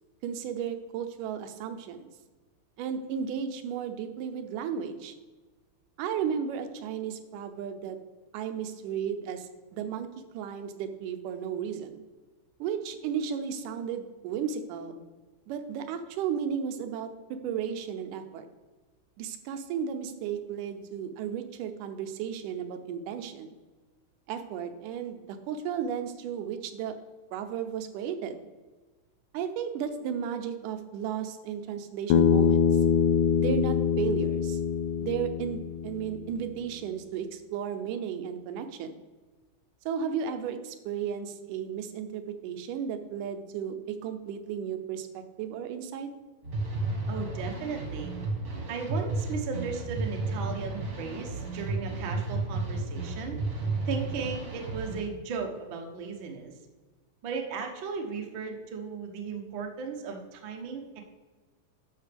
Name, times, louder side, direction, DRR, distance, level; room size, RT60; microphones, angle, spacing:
voice 1, 0.2-2.1 2.8-5.1 6.0-8.0 8.3-10.1 10.3-12.0 12.6-15.0 15.5-18.5 19.2-23.5 24.3-27.0 27.3-28.4 29.3-32.8 33.4-34.6 35.0-39.0 39.9-46.1, right 8 dB, 90° right, 8 dB, 2.3 m, -34 dB
Bass guitar, 32.1-36.4, left 7 dB, 90° left, 2.1 m, -24 dB
sound 1, 46.4-55.0, right 3 dB, 40° right, 1.5 m, -33 dB
voice 2, 47.1-48.1 48.7-53.4 53.9-56.5 57.2-61.0, right 5 dB, 65° right, 3 dB, 1.2 m, -36 dB
11.0 x 6.7 x 3.4 m, 1.3 s
omnidirectional pair, 3.6 m